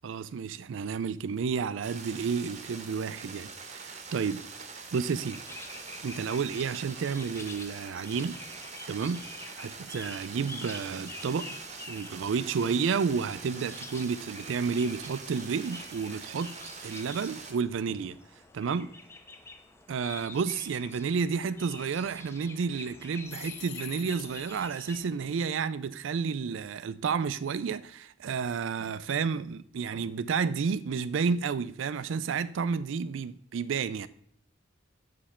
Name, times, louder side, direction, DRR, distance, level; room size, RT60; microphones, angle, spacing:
voice 1, 0.0-3.5 3.7-4.4 4.9-5.4 6.0-8.4 8.9-9.2 9.6-11.6 11.9-16.6 16.8-18.2 18.5-18.9 19.9-34.1, right 5 dB, 80° right, 0.4 m, -31 dB
sound 1, 1.8-17.5, right 4 dB, 35° right, 0.8 m, -44 dB
sound 2, 5.2-25.1, left 3 dB, 15° left, 0.6 m, -48 dB
sound 3, 23.3-25.0, left 14 dB, 65° left, 0.4 m, -46 dB
6.9 x 5.0 x 4.3 m
head